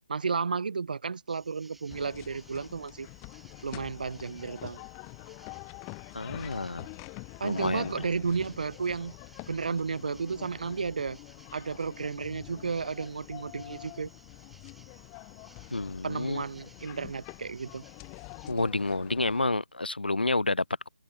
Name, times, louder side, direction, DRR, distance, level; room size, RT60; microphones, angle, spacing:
voice 1, 0.1-3.1 3.6-4.8 7.4-9.1 9.5-11.2 11.5-14.1 16.0-17.8, right 5 dB, 60° right, 0.7 m, -33 dB
sound 1, 1.3-18.5, right 3 dB, 5° right, 2.0 m, -59 dB
sound 2, 1.9-19.5, left 36 dB, 20° left, 0.8 m, -46 dB
voice 2, 6.1-6.9 7.4-7.9 15.7-16.4 18.5-20.9, left 2 dB, 90° left, 0.4 m, -29 dB
figure-of-eight pair, 145°, 5 cm